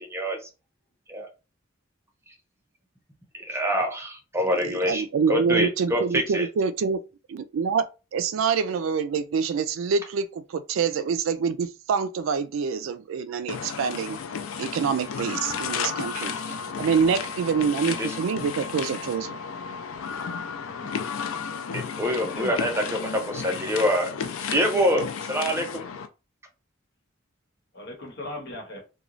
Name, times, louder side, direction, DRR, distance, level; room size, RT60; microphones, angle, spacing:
voice 1, 3.3-5.0 5.3-6.5 17.9-18.1 21.7-24.1 24.4-25.8, equal, 15° right, 0.5 m, -25 dB
voice 2, 4.6-7.0 7.3-7.8 8.1-14.2 14.6-16.4 16.8-19.4, right 6 dB, 80° right, 0.3 m, -26 dB
sound 1, 13.5-26.1, left 6 dB, 90° left, 0.4 m, -33 dB
voice 3, 22.0-22.6 27.7-28.8, left 1 dB, 55° left, 1.1 m, -38 dB
3.0 x 2.2 x 2.5 m
head